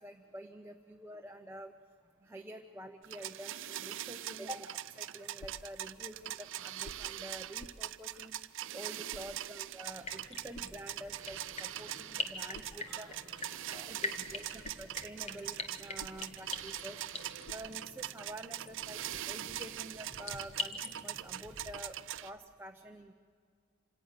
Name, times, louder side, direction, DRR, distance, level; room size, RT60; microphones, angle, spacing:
voice 1, 0.0-1.7 2.2-8.3 8.7-13.1 13.7-17.0 17.5-19.0 19.3-23.1, right 1 dB, 10° right, 4 dB, 0.8 m, -48 dB
sound 1, 3.0-22.3, right 13 dB, 60° right, 0.6 m, -42 dB
voice 2, 3.2-3.7 8.0-8.2 8.5-9.3 9.6-9.9 11.1-11.3 12.7-14.2 21.0-21.2, equal, 10° left, -3 dB, 7.6 m, -62 dB
sound 2, 5.4-5.7 6.8-7.1 7.6-7.9 9.1-9.4 10.5-10.8 12.5-12.8 14.4-15.0 15.7-16.7 17.1-17.7 18.9-19.5 20.3-20.7, left 1 dB, 70° left, 1.0 m, -53 dB
sound 3, 9.9-21.7, left 3 dB, 30° left, 1.4 m, -44 dB
26.5 x 18.0 x 6.7 m, 2.1 s
head